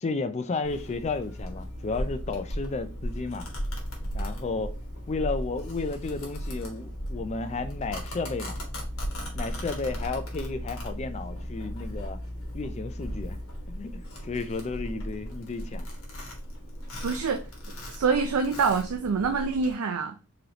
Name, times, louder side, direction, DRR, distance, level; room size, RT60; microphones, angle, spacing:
voice 1, 0.0-3.5 4.1-4.8 5.1-8.6 9.3-12.2 12.5-13.4 13.7-15.9, left 3 dB, 30° left, 0.4 m, -33 dB
Domestic sounds home sounds, 0.6-19.7, equal, 70° left, 1.3 m, -36 dB
voice 2, 17.0-17.4 17.9-20.2, right 5 dB, 75° right, 0.4 m, -26 dB
3.8 x 3.3 x 2.8 m
head